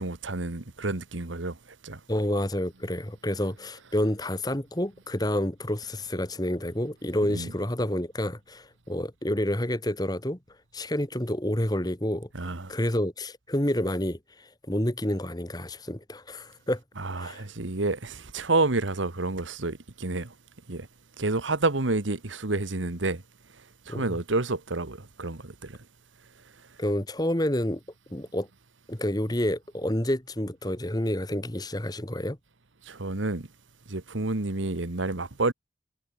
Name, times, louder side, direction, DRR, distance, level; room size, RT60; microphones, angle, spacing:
voice 1, 0.0-1.6 1.8-2.0 7.3-7.5 12.3-12.7 17.0-20.3 20.7-20.9 21.2-23.2 23.9-25.8 32.9-33.5 33.9-35.5, right 2 dB, 85° right, 1.6 m, -29 dB
voice 2, 2.1-10.4 10.7-16.8 17.2-17.4 23.9-24.2 26.8-27.8 28.1-28.5 28.9-32.4, left 1 dB, 20° left, 1.7 m, -29 dB
head